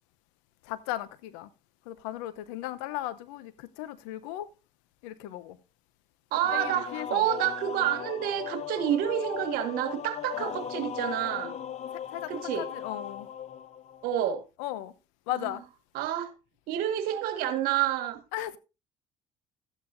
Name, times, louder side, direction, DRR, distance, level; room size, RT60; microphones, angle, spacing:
voice 1, 0.6-1.5 1.9-4.5 5.0-5.6 6.5-7.2 10.4-10.6 12.1-12.3 12.6-13.3 14.6-14.9 15.3-15.6 18.3-18.6, left 14 dB, 90° left, 0.9 m, -36 dB
voice 2, 6.3-11.5 12.3-12.7 14.0-14.4 15.3-15.5 15.9-16.3 16.7-18.2, right 11 dB, 75° right, 1.8 m, -29 dB
sound 1, 6.4-14.1, left 9 dB, 45° left, 0.7 m, -38 dB
13.0 x 9.1 x 2.7 m
supercardioid pair, 85°, 16 cm